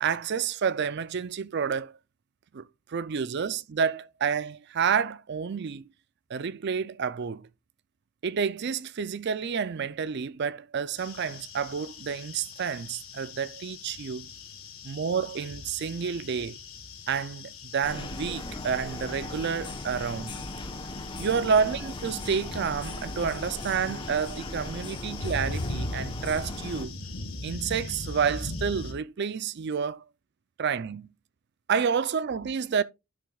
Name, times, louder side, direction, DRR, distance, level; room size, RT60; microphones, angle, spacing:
voice 1, 0.0-2.0 2.5-5.9 6.3-7.5 8.2-14.3 14.8-16.6 17.1-20.3 21.2-27.0 27.4-30.0 30.6-31.1 31.7-32.8, right 6 dB, 50° right, 0.4 m, -29 dB
sound 1, 11.0-28.9, left 2 dB, 75° left, 1.8 m, -40 dB
sound 2, 17.8-26.8, left 2 dB, 20° left, 0.9 m, -38 dB
9.9 x 6.3 x 2.3 m
head